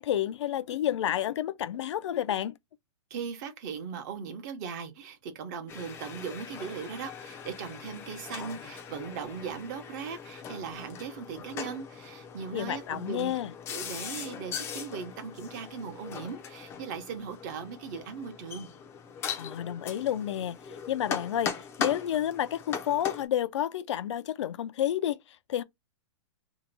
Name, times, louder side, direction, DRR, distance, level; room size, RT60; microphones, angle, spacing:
voice 1, 0.0-2.5 12.5-13.5 19.4-21.5 21.8-25.6, left 11 dB, 75° left, 0.4 m, -30 dB
voice 2, 3.1-13.3 13.7-18.7, right 6 dB, 40° right, 0.8 m, -39 dB
sound 1, 5.7-23.3, left 7 dB, 15° left, 0.5 m, -40 dB
2.8 x 2.2 x 4.0 m
hypercardioid pair, 160°, 15 cm